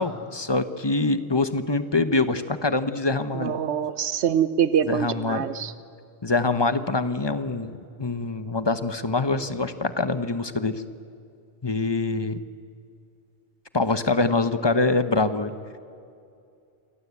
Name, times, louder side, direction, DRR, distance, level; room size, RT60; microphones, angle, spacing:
voice 1, 0.0-3.5 4.9-5.5 6.2-10.8 11.6-12.4 13.7-15.5, left 3 dB, 25° left, 11 dB, 1.0 m, -24 dB
voice 2, 3.3-5.7, right 8 dB, 85° right, 14 dB, 1.1 m, -24 dB
29.0 x 23.5 x 8.4 m, 2.4 s
omnidirectional pair, 1.1 m